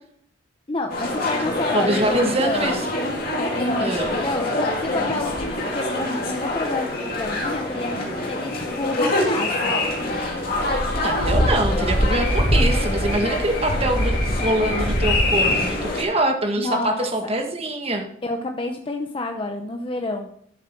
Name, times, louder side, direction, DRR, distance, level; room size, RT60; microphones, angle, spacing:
voice 1, 0.7-2.8 3.4-4.5 4.8-9.7 16.6-17.3 18.2-20.3, left 2 dB, 25° left, 4 dB, 0.7 m, -29 dB
sound 1, 0.9-16.0, left 1 dB, 50° left, 2.5 m, -24 dB
voice 2, 1.4-2.8 3.8-4.2 10.9-18.1, right 1 dB, 30° right, 3 dB, 1.5 m, -24 dB
11.5 x 7.4 x 4.5 m, 0.68 s
head